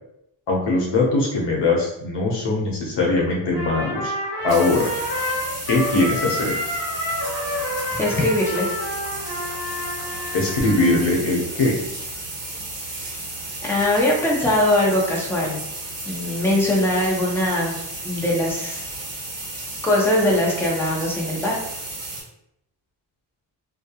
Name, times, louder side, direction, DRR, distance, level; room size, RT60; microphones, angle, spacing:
voice 1, 0.5-4.1 4.4-4.9 5.7-6.6 10.3-11.8, left 2 dB, 70° left, -2 dB, 0.9 m, -21 dB
Trumpet, 3.5-11.1, left 1 dB, 30° left, 1.0 m, -29 dB
sound 1, 4.5-22.2, right 2 dB, 50° right, 1.2 m, -33 dB
voice 2, 8.0-8.7 12.8-13.2 13.6-15.6 16.1-17.8 18.0-18.9 19.8-21.6, left 1 dB, 5° left, -4 dB, 0.6 m, -21 dB
2.2 x 2.2 x 2.9 m, 0.78 s
wide cardioid pair, 135°, 44 cm